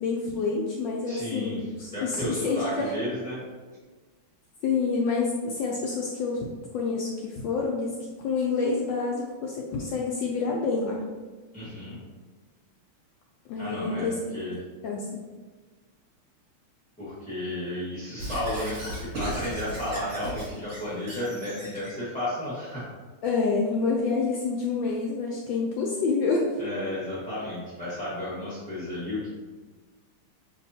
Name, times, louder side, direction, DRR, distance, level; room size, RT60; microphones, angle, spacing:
voice 1, 0.0-2.9 4.6-6.4 6.7-8.0 8.2-11.0 13.5-14.4 14.8-15.1 23.2-26.5, left 4 dB, 75° left, -2 dB, 1.1 m, -28 dB
voice 2, 1.1-1.6 1.9-3.4 11.5-12.0 13.6-14.6 17.0-22.9 26.6-29.4, left 1 dB, 10° left, -10 dB, 0.5 m, -33 dB
Squeak / Writing, 18.2-21.9, right 1 dB, 50° right, 1.6 m, -36 dB
6.0 x 2.7 x 2.7 m, 1.3 s
omnidirectional pair, 2.4 m